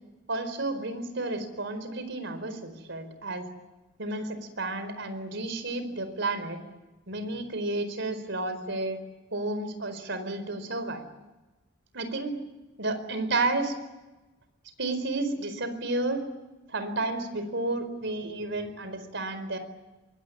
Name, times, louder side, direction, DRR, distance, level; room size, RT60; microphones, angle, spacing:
voice 1, 0.3-3.5 4.0-6.6 7.1-9.0 9.3-11.0 11.9-12.4 12.8-13.7 14.8-16.2 16.7-19.6, right 2 dB, 65° right, 10 dB, 4.5 m, -31 dB
24.5 x 22.0 x 9.9 m, 1.1 s
head